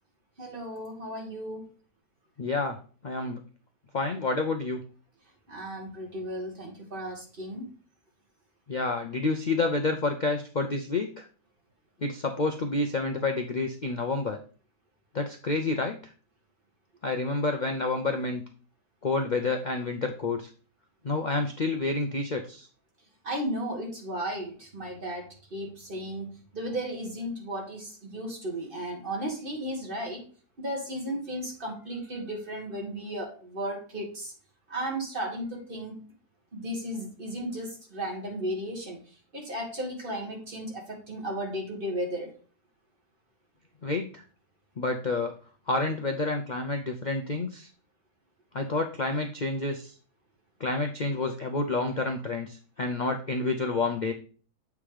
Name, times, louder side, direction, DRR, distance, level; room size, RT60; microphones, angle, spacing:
voice 1, 0.4-1.7 5.5-7.7 23.2-30.2 30.6-34.3 34.7-36.0 36.5-39.0 39.3-42.3, right 1 dB, 35° right, 1 dB, 1.8 m, -35 dB
voice 2, 2.4-2.8 3.0-3.4 3.9-4.8 8.7-11.3 12.0-14.4 15.1-16.0 17.0-18.4 19.0-20.5 21.0-22.7 43.8-44.2 44.8-45.3 45.7-47.7 48.5-49.9 50.6-54.1, left 3 dB, 75° left, 4 dB, 0.4 m, -29 dB
7.4 x 3.5 x 4.8 m, 0.40 s
omnidirectional pair, 1.7 m